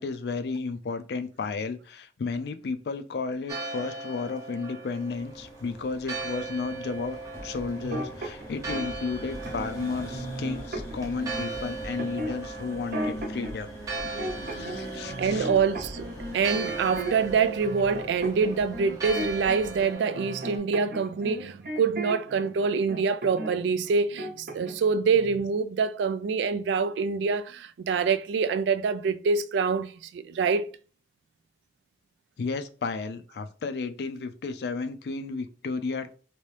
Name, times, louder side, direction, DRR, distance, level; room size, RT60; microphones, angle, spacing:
voice 1, 0.0-13.7 14.0-15.5 20.1-20.3 32.4-36.1, left 4 dB, 65° left, 0.4 m, -33 dB
Church bell, 3.5-20.6, right 3 dB, 20° right, 0.6 m, -38 dB
sound 1, 5.1-19.9, equal, 15° left, 0.7 m, -42 dB
sound 2, 7.8-8.9 9.5-9.8 10.1-11.4 12.0-13.5 13.9-14.8 15.1-17.3 17.6-22.5 22.9-23.6 23.8-24.9 25.1-25.4, right 1 dB, 55° right, 0.7 m, -36 dB
voice 2, 15.2-30.7, right 5 dB, 85° right, 0.3 m, -26 dB
3.0 x 2.6 x 3.2 m
head